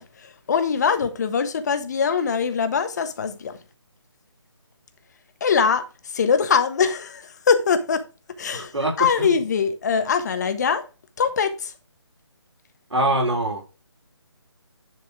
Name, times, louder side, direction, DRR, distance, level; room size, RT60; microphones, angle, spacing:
voice 1, 0.0-3.6 5.4-8.0 8.4-8.7 9.0-10.8 11.2-11.7, left 6 dB, 40° left, 1.3 m, -22 dB
voice 2, 8.5-8.9 9.2-9.3 12.9-13.7, right 1 dB, 75° right, 4.1 m, -23 dB
10.5 x 4.2 x 5.0 m
figure-of-eight pair, 155°, 15 cm